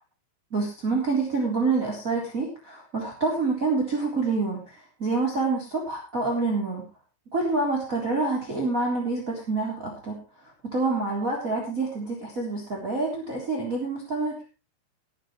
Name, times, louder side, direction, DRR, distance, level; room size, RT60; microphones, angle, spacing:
voice 1, 0.5-6.9 7.3-14.4, right 3 dB, 20° right, -1 dB, 3.6 m, -27 dB
20.0 x 10.0 x 3.2 m, 0.31 s
omnidirectional pair, 4.6 m